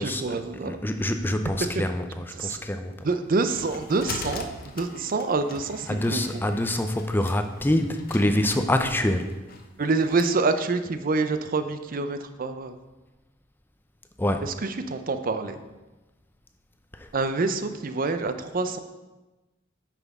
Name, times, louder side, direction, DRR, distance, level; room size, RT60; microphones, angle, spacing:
voice 1, 0.0-0.8 2.3-2.6 3.0-6.4 9.8-12.8 14.4-15.6 17.1-18.8, right 3 dB, 45° right, 9 dB, 0.6 m, -27 dB
voice 2, 0.7-3.1 5.9-9.3 14.2-14.5 17.0-17.1, left 1 dB, 10° left, 7 dB, 0.5 m, -25 dB
sound 1, 3.0-10.3, left 4 dB, 50° left, 0.8 m, -41 dB
9.1 x 6.0 x 3.6 m, 1.1 s
head